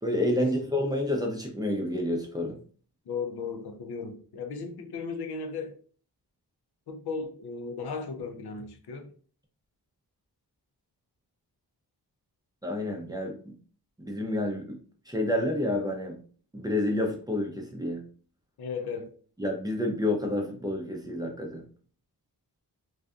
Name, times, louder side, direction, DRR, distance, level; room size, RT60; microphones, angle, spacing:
voice 1, 0.0-2.6 12.6-13.5 14.0-14.8 15.1-16.2 16.5-18.0 19.4-21.6, left 1 dB, 10° right, 0.5 m, -29 dB
voice 2, 3.1-5.8 6.9-9.1 18.6-19.1, left 5 dB, 75° left, 0.5 m, -36 dB
2.6 x 2.3 x 2.3 m
wide cardioid pair, 110°, 39 cm